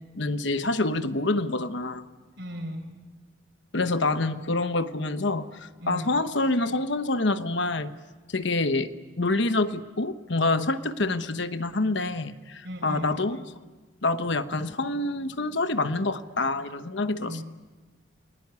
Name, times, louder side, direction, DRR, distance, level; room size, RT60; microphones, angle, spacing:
voice 1, 0.1-2.1 3.7-8.0 8.3-13.4 14.0-17.4, left 2 dB, 60° left, 10 dB, 1.1 m, -27 dB
voice 2, 2.4-2.9 5.8-6.3 12.6-13.2 17.2-17.4, equal, 55° right, 5 dB, 5.1 m, -37 dB
29.5 x 20.5 x 9.6 m, 1.3 s
head